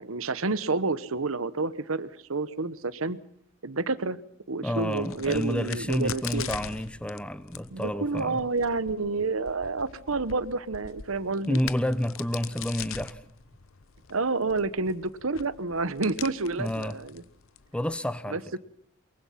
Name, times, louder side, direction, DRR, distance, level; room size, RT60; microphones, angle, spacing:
voice 1, 0.0-3.2 3.6-4.2 4.5-6.5 7.7-11.6 14.1-17.2 18.3-18.6, right 3 dB, 85° right, 1.1 m, -29 dB
voice 2, 4.6-8.4 11.5-13.2 16.6-17.0 17.7-18.4, left 1 dB, 5° left, 0.9 m, -29 dB
Crack, 4.7-18.0, left 8 dB, 75° left, 0.9 m, -43 dB
23.5 x 23.0 x 5.8 m
head